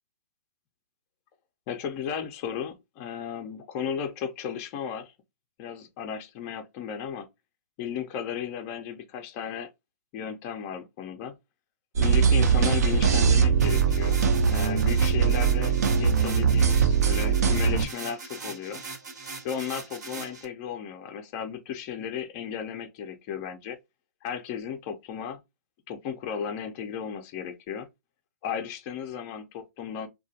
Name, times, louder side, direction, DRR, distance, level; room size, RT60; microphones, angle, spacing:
voice 1, 1.7-5.1 5.6-7.3 7.8-9.7 10.1-11.3 12.0-14.2 14.5-18.8 19.4-23.8 24.2-25.4 25.9-27.9 28.4-30.1, left 8 dB, 25° left, 0.4 m, -35 dB
sound 1, 12.0-17.9, right 6 dB, 70° right, 0.6 m, -21 dB
sound 2, 13.6-20.4, right 4 dB, 85° right, 1.1 m, -40 dB
2.2 x 2.2 x 2.7 m
hypercardioid pair, 150°, 9 cm